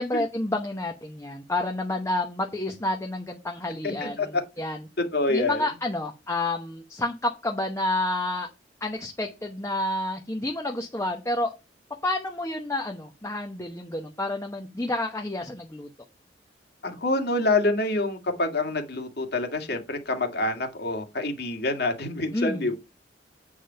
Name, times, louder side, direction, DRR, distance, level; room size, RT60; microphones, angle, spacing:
voice 1, 0.0-4.9 5.3-8.5 8.8-11.5 12.0-15.9 22.3-22.7, left 2 dB, 15° left, 1.0 m, -29 dB
voice 2, 3.8-4.4 5.1-5.6 16.8-22.8, left 2 dB, 60° left, 2.1 m, -27 dB
8.5 x 5.1 x 5.7 m
head